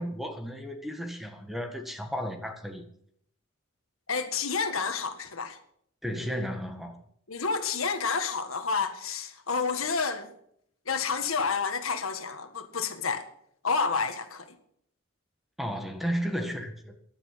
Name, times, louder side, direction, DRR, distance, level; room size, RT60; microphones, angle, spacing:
voice 1, 0.0-2.9 6.0-7.0 15.6-16.9, equal, ahead, 1.7 m, -33 dB
voice 2, 4.1-5.6 7.3-10.3 10.9-13.3 13.6-14.6, left 5 dB, 80° left, 1.8 m, -29 dB
15.5 x 11.0 x 5.8 m
head